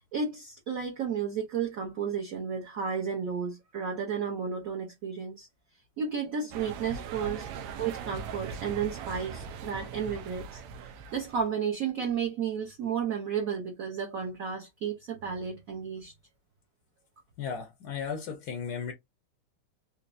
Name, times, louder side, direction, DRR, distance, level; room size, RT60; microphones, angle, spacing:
voice 1, 0.1-5.5 6.0-7.5 7.8-16.1, right 6 dB, 60° right, 0.9 m, -33 dB
sound 1, 6.5-11.5, right 6 dB, 90° right, 1.5 m, -40 dB
voice 2, 17.4-18.9, left 6 dB, 70° left, 0.9 m, -35 dB
4.4 x 2.9 x 2.5 m
omnidirectional pair, 2.4 m